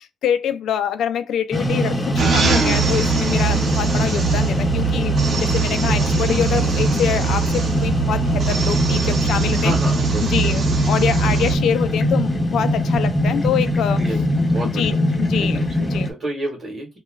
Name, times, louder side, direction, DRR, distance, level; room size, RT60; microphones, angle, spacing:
voice 1, 0.0-9.9 10.2-14.2 14.6-16.1, left 9 dB, 80° left, 0.4 m, -25 dB
sound 1, 1.5-16.1, left 1 dB, 15° left, 0.6 m, -21 dB
sound 2, 2.2-11.6, right 7 dB, 55° right, 0.7 m, -22 dB
voice 2, 8.9-10.3 14.0-17.0, right 1 dB, 35° right, 1.0 m, -31 dB
2.3 x 2.3 x 3.1 m
cardioid pair, 155°, 0 cm